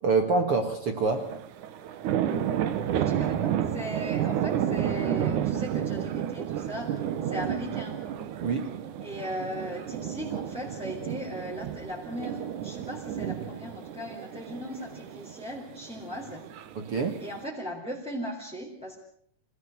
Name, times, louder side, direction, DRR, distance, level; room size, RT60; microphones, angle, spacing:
voice 1, 0.0-1.3 8.4-8.7 16.7-17.2, right 4 dB, 70° right, 7 dB, 1.3 m, -26 dB
sound 1, 1.1-17.4, right 10 dB, 85° right, 1.7 m, -31 dB
voice 2, 2.9-8.0 9.0-16.4 17.2-19.0, equal, ahead, -3 dB, 3.1 m, -38 dB
25.5 x 18.5 x 8.0 m, 0.64 s
omnidirectional pair, 5.3 m